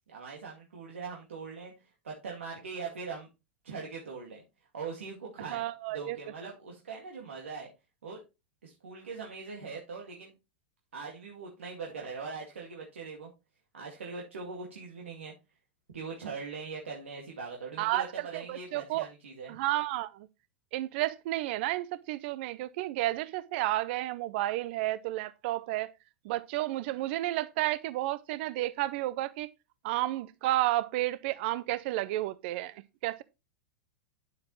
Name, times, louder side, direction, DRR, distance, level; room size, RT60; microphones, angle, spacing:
voice 1, 0.1-1.7 2.0-3.3 3.6-4.4 4.7-5.6 5.9-7.7 8.0-8.2 8.6-10.3 10.9-13.3 13.7-15.3 15.9-19.6, right 4 dB, 90° right, 2.1 m, -41 dB
voice 2, 5.5-6.2 17.8-19.1 19.5-20.3 20.7-25.9 26.2-29.5 29.8-33.2, right 16 dB, 60° right, 0.5 m, -31 dB
9.5 x 7.3 x 3.1 m
hypercardioid pair, 110°, 7 cm